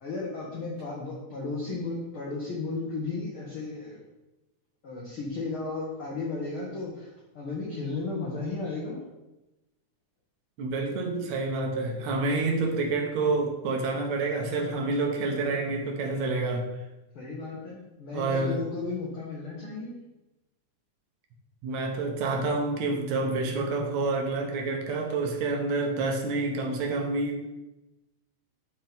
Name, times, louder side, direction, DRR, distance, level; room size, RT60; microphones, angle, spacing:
voice 1, 0.0-4.0 4.8-9.0 17.1-19.9, left 3 dB, 55° left, -4 dB, 1.6 m, -34 dB
voice 2, 10.6-16.7 18.1-18.7 21.6-27.5, right 3 dB, 65° right, 2 dB, 2.1 m, -28 dB
12.0 x 4.3 x 3.6 m, 0.99 s
omnidirectional pair, 3.8 m